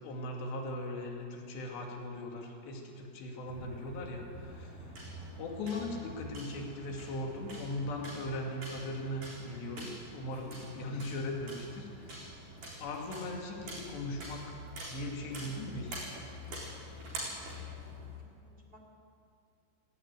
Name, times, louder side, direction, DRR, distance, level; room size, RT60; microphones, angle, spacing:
voice 1, 0.0-4.9 5.4-12.3 12.8-14.6 14.9-16.0, left 1 dB, 80° left, 1 dB, 4.6 m, -39 dB
sound 1, 3.5-18.2, equal, 60° right, 9.3 m, -46 dB
voice 2, 17.5-18.8, equal, 15° right, 1 dB, 2.6 m, -63 dB
17.5 x 17.5 x 9.7 m, 2.4 s
omnidirectional pair, 4.9 m